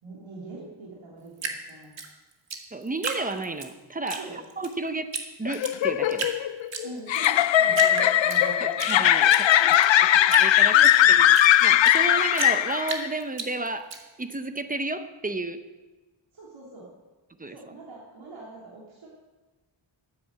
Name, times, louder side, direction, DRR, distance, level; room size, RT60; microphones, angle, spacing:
voice 1, 0.0-1.9 4.1-4.4 6.8-8.9 9.2-10.2 10.7-11.0 16.3-16.9 17.5-19.1, right 3 dB, 90° right, -5 dB, 2.9 m, -43 dB
Drip, 1.4-3.7 4.1-4.7 5.1-5.2 5.5-6.4 6.7-7.3 7.7-8.9 9.3-12.0 12.4-14.0, right 5 dB, 70° right, 1.8 m, -33 dB
voice 2, 2.7-5.1 5.4-6.3 8.6-9.3 10.4-11.3 11.6-13.9 14.2-15.6 17.4-17.6, right 2 dB, 20° right, 9 dB, 0.7 m, -32 dB
sound 1, 5.5-13.1, left 11 dB, 75° left, 0.6 m, -19 dB
13.0 x 9.7 x 7.5 m, 1.2 s
wide cardioid pair, 175°, 46 cm